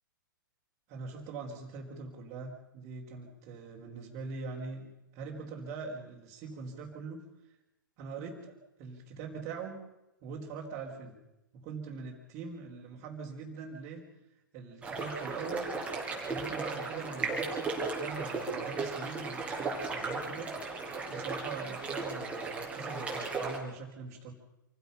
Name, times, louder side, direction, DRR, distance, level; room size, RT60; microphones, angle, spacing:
voice 1, 0.9-7.2 8.0-9.8 10.2-11.2 11.5-14.1 14.5-15.7 16.3-24.3, right 4 dB, 35° right, -5 dB, 4.4 m, -42 dB
sound 1, 14.8-23.6, right 3 dB, 10° right, 5.2 m, -36 dB
28.0 x 16.5 x 5.8 m, 0.93 s
figure-of-eight pair, 110°, 11 cm